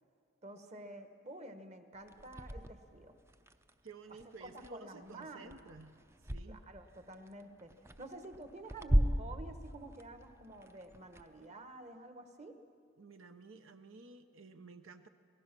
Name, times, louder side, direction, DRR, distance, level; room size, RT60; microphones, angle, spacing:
voice 1, 0.4-3.2 4.4-5.7 6.5-12.5, right 2 dB, 30° right, 7 dB, 1.2 m, -50 dB
sound 1, 1.9-6.5 6.9-11.5, equal, 15° right, 0.5 m, -37 dB
voice 2, 3.8-5.9 6.2-6.6 13.0-15.1, right 3 dB, 70° right, 8 dB, 0.8 m, -53 dB
27.0 x 18.0 x 6.0 m, 2.3 s
head